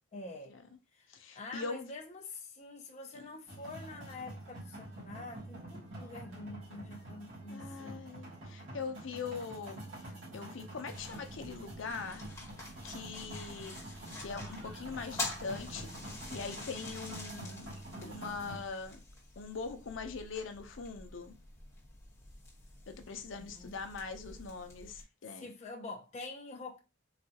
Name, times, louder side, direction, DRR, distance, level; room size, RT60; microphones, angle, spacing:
voice 1, 0.1-0.6 0.9-1.1 1.4-8.0 23.4-23.8 24.3-24.4 25.4-26.8, left 2 dB, 35° left, 0.5 m, -46 dB
voice 2, 1.1-1.9 3.1-3.3 7.5-12.2 12.8-13.8 14.2-15.9 16.3-17.7 18.0-19.0 19.4-21.3 22.9-25.5, left 5 dB, 80° left, 0.6 m, -42 dB
sound 1, 3.5-18.6, right 1 dB, 85° right, 1.8 m, -47 dB
sound 2, 10.9-25.0, left 2 dB, 15° left, 1.2 m, -47 dB
4.0 x 2.3 x 2.8 m
head